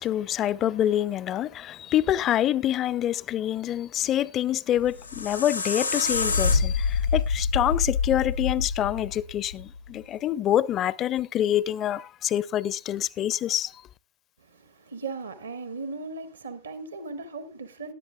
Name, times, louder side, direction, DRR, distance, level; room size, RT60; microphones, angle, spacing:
voice 1, 0.0-13.8, left 11 dB, 30° left, 0.5 m, -26 dB
sound 1, 4.8-9.9, left 4 dB, 85° left, 1.0 m, -26 dB
voice 2, 14.4-17.9, right 3 dB, 70° right, 1.3 m, -37 dB
18.5 x 11.0 x 2.2 m
figure-of-eight pair, 90°, 0 cm